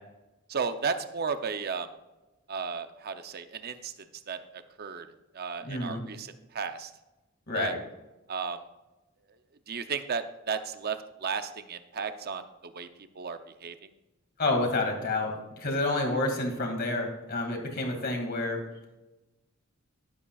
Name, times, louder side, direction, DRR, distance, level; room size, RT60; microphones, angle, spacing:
voice 1, 0.5-1.9 2.5-3.9 4.3-5.1 5.3-6.9 7.5-7.7 8.3-8.6 9.7-12.9 13.1-13.8, right 5 dB, 45° right, 9 dB, 0.6 m, -34 dB
voice 2, 5.6-6.0 7.5-7.8 14.4-18.6, left 2 dB, 45° left, 2 dB, 2.3 m, -29 dB
12.0 x 11.0 x 2.4 m, 1.0 s
head